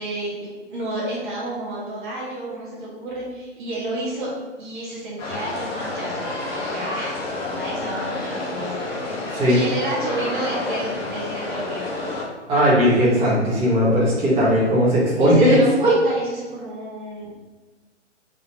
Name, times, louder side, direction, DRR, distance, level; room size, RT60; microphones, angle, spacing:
voice 1, 0.0-4.3 4.6-7.2 7.5-8.8 9.4-11.9 15.2-17.4, right 1 dB, 40° right, -5 dB, 1.4 m, -30 dB
sound 1, 5.2-12.2, left 2 dB, 15° left, 0.8 m, -29 dB
voice 2, 12.5-15.6, equal, 15° right, -9 dB, 1.4 m, -17 dB
3.9 x 3.9 x 3.0 m, 1.3 s
figure-of-eight pair, 130°, 37 cm